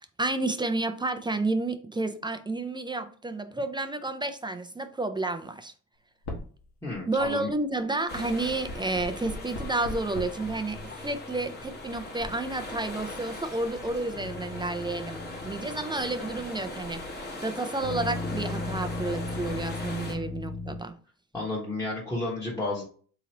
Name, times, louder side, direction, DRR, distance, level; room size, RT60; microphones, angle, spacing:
voice 1, 0.0-5.7 7.1-21.0, right 2 dB, 15° right, 0.3 m, -31 dB
sound 1, 6.2-6.6 6.9-7.5 8.4-17.2 17.8-20.8, left 2 dB, 75° left, 1.2 m, -38 dB
voice 2, 6.8-7.5 20.1-20.2 21.3-22.8, left 2 dB, 10° left, 1.1 m, -32 dB
sound 2, 8.1-20.1, left 1 dB, 35° left, 1.2 m, -40 dB
3.8 x 2.9 x 2.9 m
cardioid pair, 90°, 30 cm